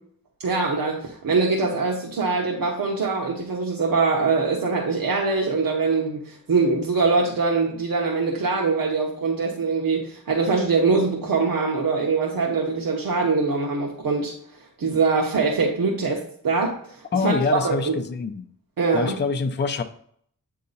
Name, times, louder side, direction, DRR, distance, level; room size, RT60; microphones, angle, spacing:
voice 1, 0.4-14.3 14.8-16.8 17.2-17.9 18.8-19.2, right 4 dB, 75° right, -1 dB, 1.0 m, -23 dB
voice 2, 17.1-18.4 18.9-19.8, left 5 dB, 30° left, 6 dB, 0.5 m, -25 dB
8.4 x 2.8 x 3.9 m, 0.62 s
wide cardioid pair, 105°, 34 cm